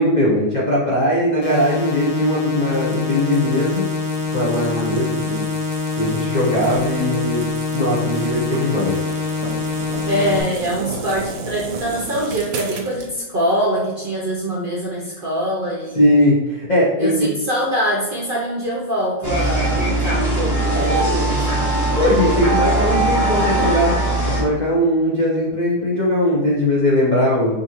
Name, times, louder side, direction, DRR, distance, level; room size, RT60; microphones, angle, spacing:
voice 1, 0.0-3.9 4.3-5.5 6.0-7.5 7.7-9.0 15.9-17.3 22.0-24.0 24.3-27.6, left 1 dB, 80° left, -5 dB, 0.4 m, -19 dB
sound 1, 1.4-10.4, left 4 dB, 55° left, 0.8 m, -25 dB
sound 2, 2.7-13.1, right 3 dB, 80° right, 1.2 m, -34 dB
voice 2, 10.1-16.0 17.0-21.7, right 1 dB, 55° right, -5 dB, 0.5 m, -23 dB
sound 3, 19.2-24.4, right 2 dB, 15° left, 0.7 m, -20 dB
5.0 x 2.6 x 2.9 m, 1.1 s
omnidirectional pair, 1.8 m